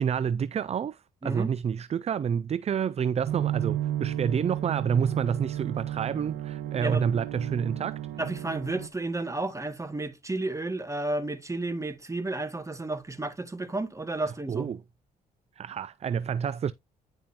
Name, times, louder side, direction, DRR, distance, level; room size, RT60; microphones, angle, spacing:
voice 1, 0.0-8.0 14.5-14.8 15.6-16.7, right 7 dB, 40° right, 0.4 m, -28 dB
sound 1, 3.3-8.9, right 12 dB, 85° right, 1.2 m, -33 dB
voice 2, 8.2-14.7, right 2 dB, 20° right, 2.1 m, -32 dB
10.0 x 5.4 x 2.9 m
supercardioid pair, 60°, 17 cm